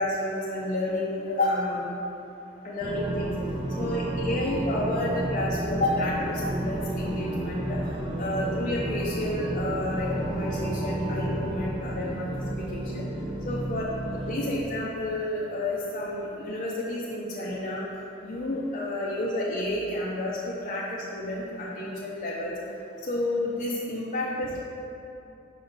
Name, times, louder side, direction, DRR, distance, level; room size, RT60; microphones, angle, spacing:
voice 1, 0.0-1.9 2.6-3.3 3.8-7.8 8.2-13.1 13.4-13.9 14.1-17.8 18.2-22.5 23.0-24.6, left 1 dB, 35° left, -7 dB, 0.6 m, -30 dB
sound 1, 2.8-14.6, right 1 dB, 20° right, 0.5 m, -31 dB
5.2 x 5.2 x 3.9 m, 2.8 s
head